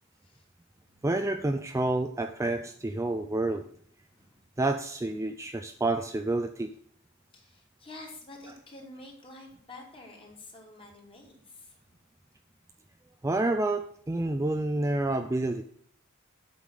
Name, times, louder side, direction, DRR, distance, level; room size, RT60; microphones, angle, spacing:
voice 1, 1.0-3.7 4.6-6.7 13.2-15.6, right 2 dB, 15° right, 6 dB, 0.4 m, -29 dB
voice 2, 4.1-4.4 6.0-6.1 7.3-12.0, left 2 dB, 25° left, 0 dB, 2.6 m, -49 dB
8.5 x 5.5 x 6.5 m, 0.63 s
head